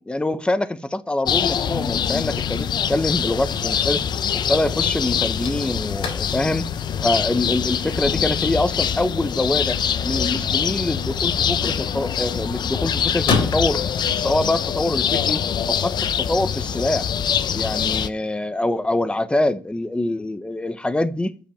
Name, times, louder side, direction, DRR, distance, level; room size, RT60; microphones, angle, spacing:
voice 1, 0.0-4.0 4.3-6.7 7.0-9.8 10.0-13.9 14.2-17.1 17.5-21.3, left 1 dB, 10° left, 1.2 m, -24 dB
sound 1, 1.3-18.1, left 8 dB, 55° left, 0.9 m, -24 dB
sound 2, 4.4-16.7, left 4 dB, 70° left, 3.8 m, -34 dB
12.5 x 7.7 x 9.1 m
supercardioid pair, 70°, 9 cm